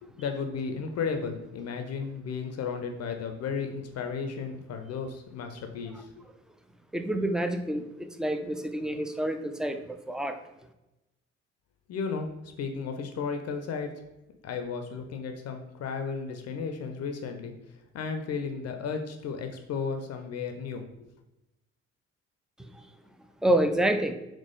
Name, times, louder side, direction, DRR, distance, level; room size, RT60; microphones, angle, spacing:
voice 1, 0.0-6.2 11.9-13.9 14.4-17.5 17.9-21.1, left 5 dB, 45° left, 6 dB, 0.5 m, -34 dB
voice 2, 6.9-10.4 22.7-22.8 23.4-24.1, right 1 dB, ahead, 7 dB, 0.3 m, -28 dB
4.0 x 3.0 x 3.5 m, 0.96 s
figure-of-eight pair, 45°, 35 cm